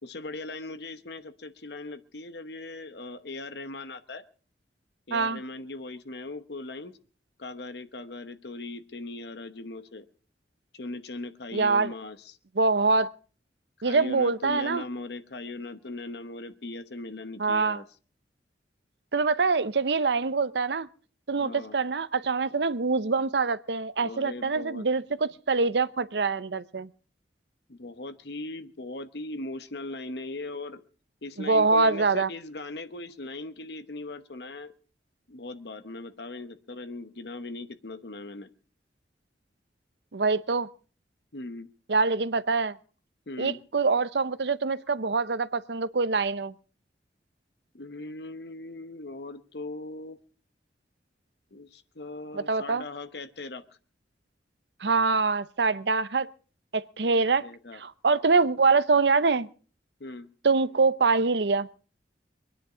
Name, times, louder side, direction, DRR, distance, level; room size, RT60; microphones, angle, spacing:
voice 1, 0.0-4.2 5.1-7.0 7.4-10.1 10.7-12.4 13.8-17.8 21.4-21.8 24.0-24.9 27.7-30.8 31.2-34.7 35.3-38.5 41.3-41.7 43.3-43.6 47.7-50.2 51.5-53.6 57.1-57.8 60.0-60.3, left 2 dB, 65° left, 10 dB, 1.0 m, -39 dB
voice 2, 11.5-11.9 12.6-13.1 13.8-14.8 17.4-17.8 19.1-20.9 21.3-26.9 31.4-32.3 40.1-40.7 41.9-42.8 43.4-46.5 52.3-52.8 54.8-56.3 56.7-57.5 57.7-59.5 60.4-61.7, right 4 dB, 70° right, 16 dB, 0.7 m, -24 dB
23.5 x 10.0 x 5.0 m, 0.40 s
head